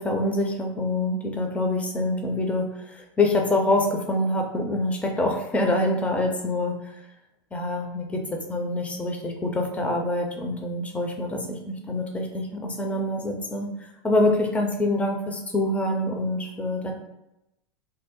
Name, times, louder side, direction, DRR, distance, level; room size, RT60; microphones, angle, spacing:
voice 1, 0.0-6.9 7.5-8.2 8.5-16.9, left 2 dB, 10° left, 2 dB, 0.5 m, -26 dB
2.7 x 2.0 x 3.6 m, 0.88 s
hypercardioid pair, 105°, 13 cm